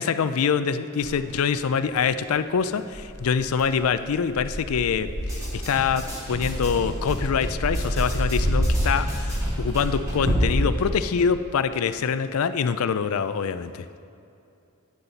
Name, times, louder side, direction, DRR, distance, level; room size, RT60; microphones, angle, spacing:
voice 1, 0.0-13.9, left 6 dB, 75° left, 12 dB, 0.4 m, -25 dB
Dog, 1.0-1.2 1.9-2.0 2.9-10.9, equal, 70° right, 2.1 m, -27 dB
sound 1, 5.2-10.3, equal, 15° right, 2.4 m, -37 dB
9.9 x 9.6 x 4.1 m, 2.7 s
head